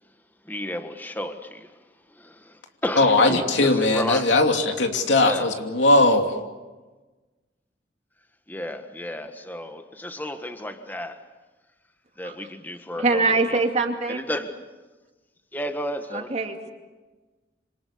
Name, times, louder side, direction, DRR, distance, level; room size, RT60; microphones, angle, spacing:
voice 1, 0.4-1.8 2.1-4.3 5.2-5.5 8.5-11.2 12.2-13.6 14.1-14.5 15.5-16.3, equal, 10° left, 1.6 m, -32 dB
voice 2, 3.0-6.3, left 2 dB, 90° left, 2.9 m, -19 dB
voice 3, 13.0-14.3 16.1-16.7, right 3 dB, 40° right, 2.6 m, -23 dB
27.0 x 26.5 x 7.0 m
head